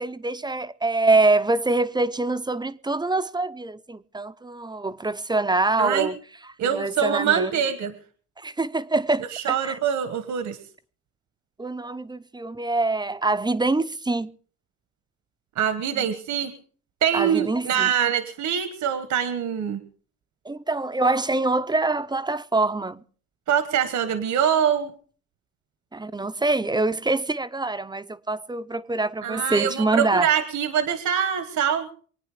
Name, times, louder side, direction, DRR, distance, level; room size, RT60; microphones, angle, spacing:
voice 1, 0.0-6.2 6.6-7.5 8.4-9.8 11.6-14.3 15.9-16.1 17.1-17.9 20.5-23.0 25.9-30.3, right 2 dB, 15° right, 0.7 m, -25 dB
voice 2, 5.8-6.1 6.6-7.9 9.3-10.6 15.6-16.5 17.0-19.8 23.5-24.9 29.2-31.9, right 8 dB, 70° right, 1.4 m, -24 dB
24.0 x 9.2 x 4.9 m
cardioid pair, 90°, 30 cm